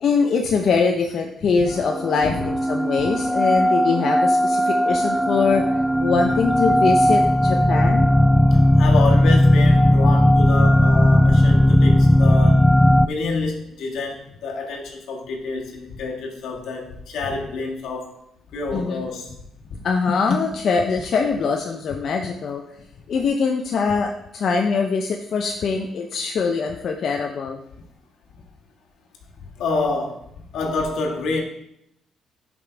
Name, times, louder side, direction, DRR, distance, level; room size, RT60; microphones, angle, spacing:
voice 1, 0.0-5.6 6.0-8.1 18.7-19.0 19.8-22.6 23.1-27.6, left 5 dB, 60° left, 3 dB, 0.7 m, -22 dB
sound 1, 1.7-13.1, left 1 dB, ahead, 0.3 m, -17 dB
voice 2, 8.5-12.7 13.0-18.2 18.5-19.3 19.7-19.8 29.4-31.4, left 3 dB, 80° left, 0 dB, 1.8 m, -28 dB
11.0 x 5.4 x 3.4 m, 0.77 s
cardioid pair, 90°, 0 cm